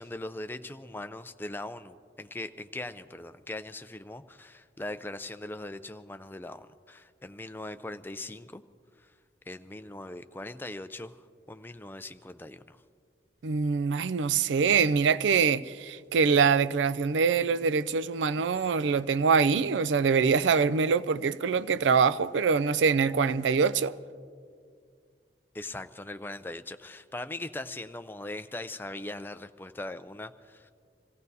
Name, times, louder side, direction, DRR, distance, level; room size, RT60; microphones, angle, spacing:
voice 1, 0.0-8.6 9.0-9.1 9.5-12.8 25.5-30.7, left 2 dB, 10° left, 0.4 m, -40 dB
voice 2, 13.4-23.9, right 5 dB, 75° right, 0.4 m, -24 dB
26.5 x 16.5 x 2.7 m
head